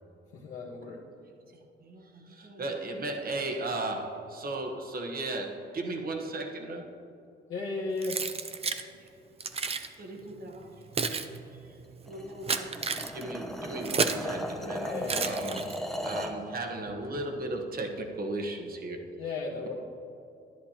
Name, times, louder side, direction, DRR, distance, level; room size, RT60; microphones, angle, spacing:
voice 1, 0.3-1.0 7.5-8.2 14.8-15.3 15.6-15.7 19.2-19.7, left 3 dB, 85° left, -6 dB, 1.2 m, -35 dB
voice 2, 1.5-7.0 9.0-9.1 10.0-11.7 12.1-19.1, right 2 dB, 50° right, 3 dB, 1.2 m, -36 dB
Keys jangling, 8.0-8.8 9.4-9.9 10.6-14.3 15.0-16.0, right 5 dB, 30° right, 0.6 m, -32 dB
sound 1, 12.0-16.4, equal, ahead, 0.9 m, -36 dB
10.5 x 10.5 x 2.9 m, 2.8 s
cardioid pair, 90°, 20 cm